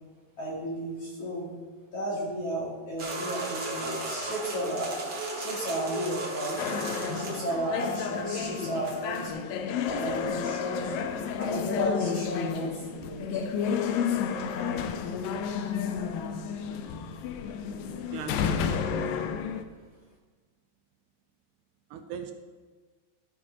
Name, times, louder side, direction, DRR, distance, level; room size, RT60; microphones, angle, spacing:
voice 1, 0.4-1.5 1.9-4.9 5.3-6.6 7.1-9.3 9.8-11.0 11.4-13.4, equal, 45° left, -5 dB, 2.8 m, -33 dB
sound 1, 3.0-9.3, right 2 dB, 60° right, 1.0 m, -36 dB
sound 2, 6.6-19.6, left 7 dB, 85° left, 1.9 m, -31 dB
voice 2, 18.1-19.6 21.9-22.3, right 7 dB, 80° right, 7 dB, 2.5 m, -40 dB
14.0 x 6.0 x 5.3 m, 1.4 s
omnidirectional pair, 4.8 m